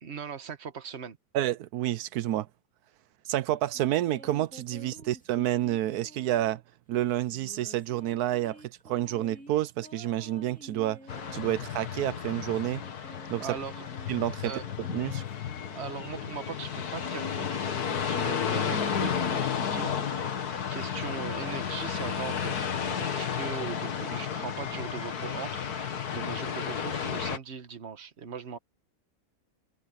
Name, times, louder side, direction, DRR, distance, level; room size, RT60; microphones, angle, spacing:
voice 1, 0.0-1.2 5.0-5.1 13.4-13.8 14.4-14.6 15.7-17.6 18.1-20.5 20.7-28.6, right 7 dB, 45° right, 1.5 m, -40 dB
voice 2, 1.3-2.5 3.3-6.6 6.9-11.0 11.3-12.8 13.3-13.6 14.1-14.5 14.9-15.2, right 13 dB, 85° right, 1.2 m, -29 dB
sound 1, 3.6-6.7 7.3-11.5 12.1-16.8, equal, 5° left, 2.1 m, -51 dB
sound 2, 11.1-27.4, left 7 dB, 90° left, 2.0 m, -32 dB
omnidirectional pair, 1.6 m